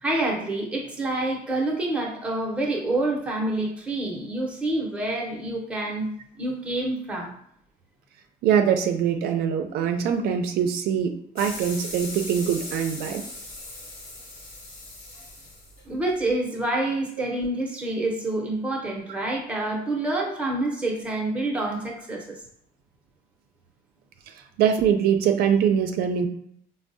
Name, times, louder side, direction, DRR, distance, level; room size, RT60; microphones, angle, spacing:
voice 1, 0.0-6.1 6.4-7.3 15.9-22.4, right 2 dB, 5° right, -2 dB, 0.6 m, -27 dB
voice 2, 8.4-13.2 24.6-26.3, right 8 dB, 85° right, 6 dB, 0.4 m, -23 dB
sound 1, 11.4-16.3, left 2 dB, 45° left, 0.9 m, -39 dB
4.3 x 2.0 x 2.6 m, 0.68 s
cardioid pair, 165°, 16 cm